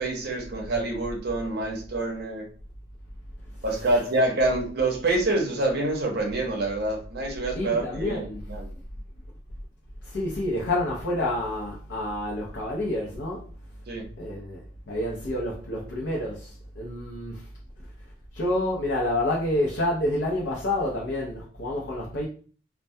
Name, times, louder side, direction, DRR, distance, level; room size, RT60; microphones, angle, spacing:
voice 1, 0.0-2.5 3.6-8.7 13.9-14.1, right 2 dB, 60° right, 0.6 m, -26 dB
voice 2, 7.5-8.4 10.0-13.4 14.2-14.6 14.9-17.4 18.3-22.3, left 1 dB, 80° left, 0.6 m, -28 dB
2.2 x 2.2 x 2.6 m
head